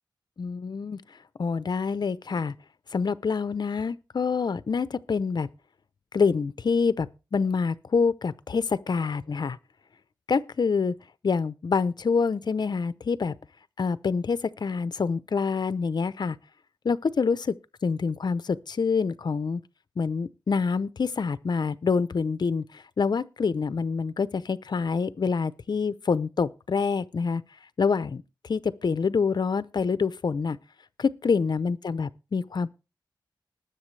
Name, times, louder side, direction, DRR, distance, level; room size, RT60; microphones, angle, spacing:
voice 1, 0.4-1.0 1.4-2.5 2.9-5.5 6.1-9.6 10.3-10.9 11.2-13.3 13.8-16.4 16.8-17.5 17.8-19.6 20.0-27.4 27.8-30.6 31.0-32.7, left 5 dB, 60° left, 0.6 m, -26 dB
20.0 x 6.9 x 3.3 m
wide cardioid pair, 95°, 8 cm